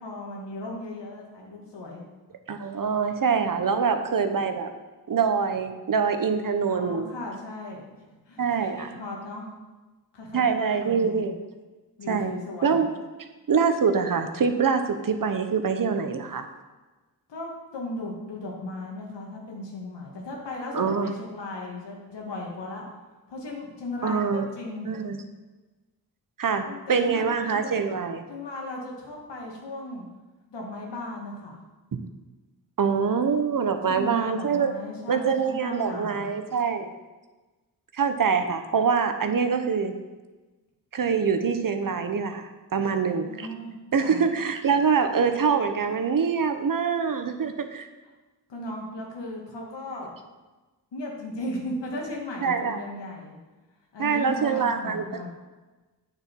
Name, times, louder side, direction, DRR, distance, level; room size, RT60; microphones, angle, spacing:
voice 1, 0.0-2.0 6.7-7.8 8.3-9.5 10.1-11.3 12.0-12.9 17.3-22.9 23.3-24.9 26.6-27.8 28.3-30.1 30.5-31.6 33.8-36.3 42.8-44.2 48.5-50.1 50.9-53.4 53.9-55.3, left 1 dB, 90° left, -1 dB, 2.2 m, -36 dB
voice 2, 2.5-4.7 5.1-7.1 8.4-8.9 10.3-11.3 12.1-12.3 12.6-12.9 13.5-16.5 20.7-21.1 24.0-24.5 24.9-25.2 26.4-28.2 32.8-34.7 35.1-36.9 37.9-39.9 40.9-43.5 43.9-47.9 52.4-52.8 54.0-55.0, right 6 dB, 50° right, 8 dB, 0.9 m, -24 dB
8.9 x 6.8 x 4.6 m, 1.2 s
wide cardioid pair, 95°, 41 cm